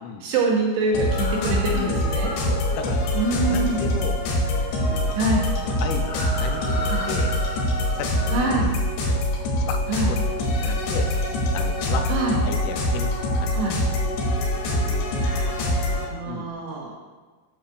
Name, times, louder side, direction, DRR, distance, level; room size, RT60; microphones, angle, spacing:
voice 1, 0.2-2.3 3.1-3.9 5.2-5.5 6.9-7.1 8.3-8.7 9.9-10.1 12.1-12.4 13.5-13.8 15.2-16.9, right 2 dB, 75° right, -2 dB, 2.9 m, -25 dB
sound 1, 0.9-16.1, left 1 dB, 75° left, 3.4 m, -24 dB
sound 2, 1.1-3.6 5.9-8.8, left 1 dB, 45° left, 1.9 m, -36 dB
voice 2, 2.4-3.2 3.4-5.2 5.6-7.4 8.0-8.7 9.1-9.2 9.6-14.0 14.8-15.1 16.3-16.5, left 6 dB, 90° left, 5 dB, 3.2 m, -35 dB
11.0 x 6.5 x 2.5 m, 1.4 s
omnidirectional pair, 5.4 m